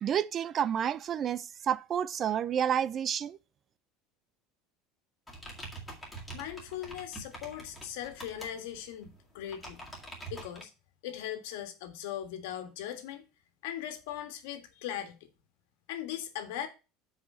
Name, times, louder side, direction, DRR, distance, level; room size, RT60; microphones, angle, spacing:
voice 1, 0.0-3.4, right 9 dB, 30° right, 0.4 m, -30 dB
sound 1, 5.3-10.6, right 2 dB, 5° left, 2.1 m, -46 dB
voice 2, 6.3-9.8 10.3-10.7 11.0-13.2 13.6-15.2 15.9-16.7, left 11 dB, 85° left, 1.6 m, -39 dB
7.5 x 4.9 x 5.5 m
cardioid pair, 160°, 0 cm